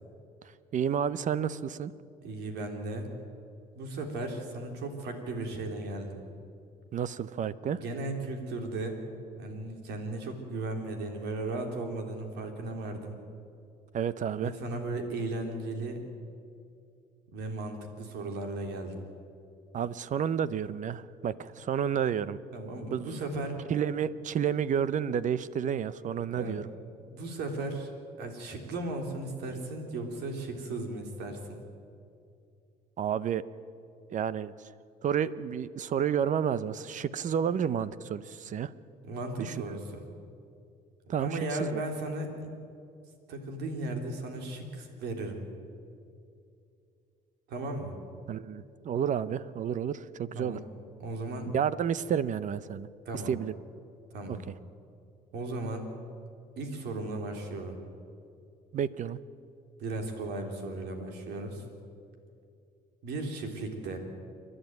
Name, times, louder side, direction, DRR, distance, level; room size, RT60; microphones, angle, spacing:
voice 1, 0.7-1.9 6.9-7.8 13.9-14.5 19.7-22.4 22.9-23.2 23.7-26.7 33.0-33.4 34.1-34.5 35.0-38.7 39.4-39.5 41.1-41.3 41.6-41.8 48.3-50.6 51.5-52.9 53.3-53.6 54.3-54.5 58.7-59.2, right 8 dB, 50° right, 17 dB, 0.7 m, -30 dB
voice 2, 2.2-3.1 3.8-6.2 7.7-9.0 9.4-13.2 14.4-16.0 17.3-19.0 22.5-23.6 26.3-26.6 27.0-27.9 28.2-31.6 39.0-40.0 41.1-42.5 43.3-45.4 47.5-48.0 50.4-50.6 51.0-51.5 53.1-53.3 54.1-54.4 55.3-55.9 56.6-57.8 59.8-61.6 63.0-64.0, right 2 dB, 80° right, 4 dB, 3.5 m, -36 dB
28.0 x 11.5 x 9.4 m, 2.5 s
cardioid pair, 110°, 17 cm